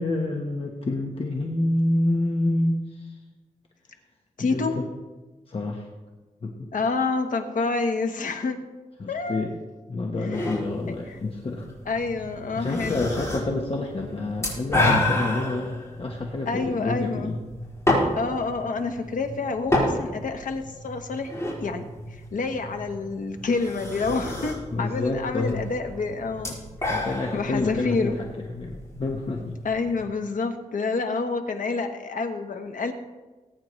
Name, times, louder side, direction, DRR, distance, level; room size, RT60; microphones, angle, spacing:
voice 1, 0.0-3.2 4.4-4.9 5.5-5.9 6.4-6.7 9.0-9.6 9.9-11.7 12.6-17.4 24.7-25.7 26.9-29.6, left 2 dB, 45° left, 0 dB, 1.2 m, -28 dB
voice 2, 4.4-4.8 6.7-8.6 9.1-9.5 10.2-10.6 10.9-11.2 11.9-13.1 16.5-17.4 18.1-21.3 21.6-21.9 22.3-26.5 26.8-28.2 29.6-32.9, left 4 dB, 80° left, 5 dB, 1.2 m, -28 dB
sound 1, 10.3-30.0, left 1 dB, 20° left, 4.5 m, -31 dB
20.0 x 9.3 x 3.2 m, 1.2 s
wide cardioid pair, 150°, 13 cm